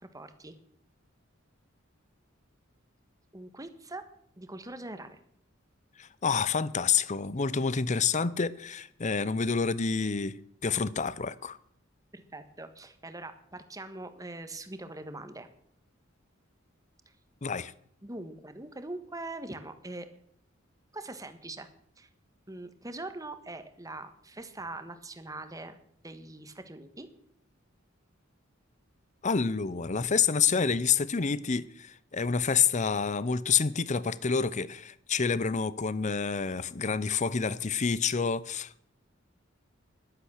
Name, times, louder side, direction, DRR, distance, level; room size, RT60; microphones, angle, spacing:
voice 1, 0.1-0.5 3.3-4.0 4.4-5.2 12.1-15.5 18.0-20.1 20.9-21.7 22.0-22.1 22.5-25.8 26.0-27.1, right 2 dB, 20° right, 1.4 m, -42 dB
voice 2, 6.0-10.4 10.6-11.6 17.4-17.7 29.2-38.9, left 5 dB, 35° left, 0.7 m, -28 dB
14.5 x 11.5 x 6.4 m
head